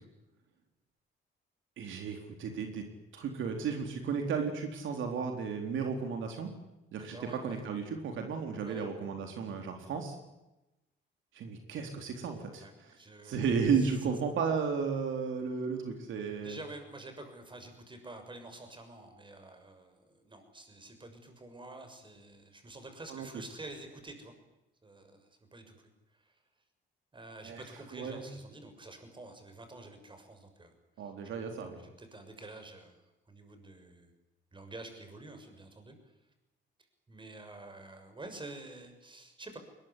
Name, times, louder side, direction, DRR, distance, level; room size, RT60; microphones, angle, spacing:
voice 1, 1.8-2.8 3.1-6.5 6.9-7.2 7.4-10.1 11.3-13.0 13.2-16.6 23.1-23.4 27.4-27.6 27.9-28.2 31.0-31.8, right 5 dB, 75° right, 4 dB, 3.9 m, -34 dB
voice 2, 7.0-7.7 8.7-8.9 12.6-13.9 16.4-24.3 24.8-25.7 26.1-26.3 27.1-30.7 31.0-31.1 31.8-33.0 33.3-34.1 34.5-36.0 37.1-39.6, right 2 dB, 25° right, 6 dB, 6.6 m, -48 dB
21.5 x 21.0 x 9.9 m, 0.96 s
cardioid pair, 90°, 20 cm